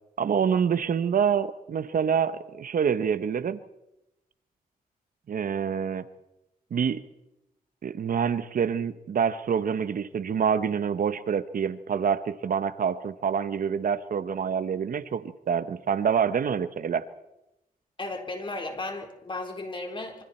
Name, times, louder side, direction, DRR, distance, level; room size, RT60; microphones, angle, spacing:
voice 1, 0.2-3.6 5.3-6.1 6.7-7.0 7.8-17.1, right 7 dB, 65° right, 13 dB, 1.0 m, -26 dB
voice 2, 18.0-20.2, left 2 dB, 35° left, 3 dB, 4.2 m, -35 dB
27.0 x 25.5 x 4.4 m, 0.91 s
cardioid pair, 95°, 15 cm